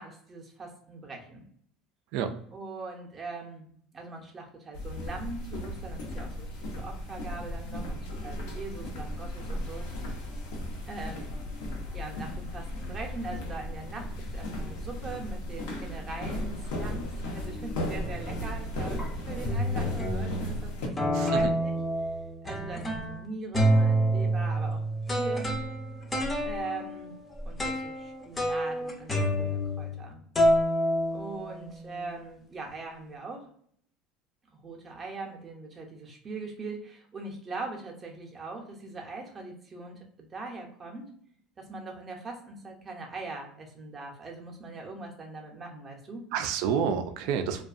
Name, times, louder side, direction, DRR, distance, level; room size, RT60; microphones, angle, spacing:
voice 1, 0.0-1.5 2.5-9.9 10.8-11.3 11.9-21.7 22.0-22.1 22.4-24.8 25.2-25.6 26.4-27.2 27.4-30.2 31.1-33.5 34.5-41.1 41.6-46.2, right 3 dB, 25° right, 1 dB, 0.6 m, -41 dB
sound 1, 4.7-20.9, left 1 dB, 85° left, 0.7 m, -36 dB
sound 2, 18.0-18.4 19.0-19.1 19.5-20.5 21.0-23.2 23.5-30.1 30.4-31.8, equal, 15° left, 0.5 m, -28 dB
voice 2, 21.1-21.5 46.3-47.6, right 7 dB, 65° right, 8 dB, 0.3 m, -29 dB
2.5 x 2.3 x 2.4 m, 0.63 s
cardioid pair, 135°, 0 cm